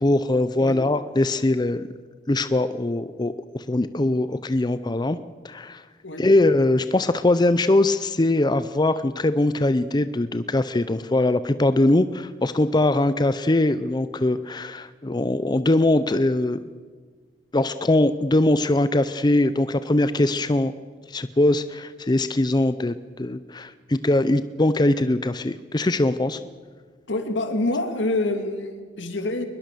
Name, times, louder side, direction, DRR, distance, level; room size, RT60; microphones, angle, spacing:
voice 1, 0.0-1.9 2.3-5.2 5.4-5.8 6.2-16.6 17.5-20.7 21.1-26.4, left 2 dB, 25° left, 13 dB, 0.5 m, -21 dB
voice 2, 27.1-29.4, left 2 dB, 85° left, 6 dB, 2.6 m, -26 dB
22.0 x 21.0 x 6.9 m, 1.5 s
head